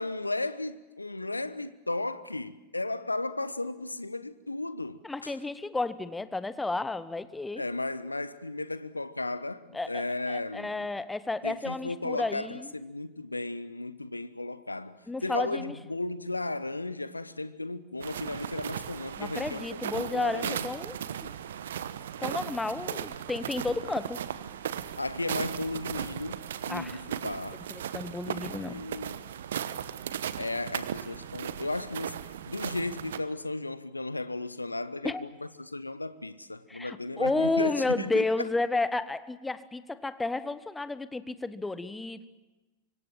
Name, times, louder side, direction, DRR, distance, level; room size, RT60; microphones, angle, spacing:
voice 1, 0.0-5.4 7.6-10.9 11.4-20.7 25.0-27.6 28.2-29.2 30.4-35.3 35.6-38.5, left 2 dB, 85° left, 1.0 m, -35 dB
voice 2, 5.0-7.6 9.7-12.7 15.1-15.8 19.2-21.3 22.2-24.2 26.7-27.0 27.7-28.8 35.0-35.2 36.7-42.3, left 3 dB, 10° left, 1.1 m, -32 dB
sound 1, 18.0-33.2, right 9 dB, 60° right, 1.1 m, -37 dB
25.0 x 24.5 x 7.4 m
figure-of-eight pair, 90°, 0 cm